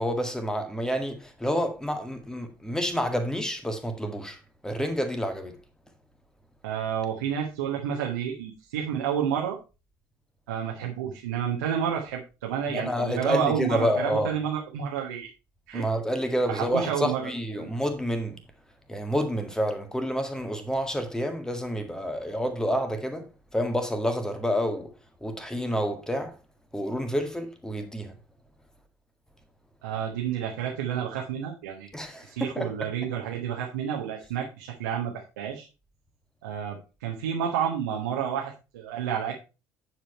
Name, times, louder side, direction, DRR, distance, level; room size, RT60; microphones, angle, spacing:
voice 1, 0.0-4.4 4.6-5.5 12.7-14.3 15.7-18.4 18.9-23.3 23.5-24.9 25.2-26.4 26.7-28.1 31.9-32.7, equal, 5° left, 1.8 m, -28 dB
voice 2, 6.6-9.6 10.5-15.3 15.7-15.9 16.5-17.7 29.8-31.9 32.2-35.7 36.4-39.3, right 8 dB, 70° right, 1.3 m, -30 dB
9.3 x 4.9 x 4.4 m
figure-of-eight pair, 55°, 10 cm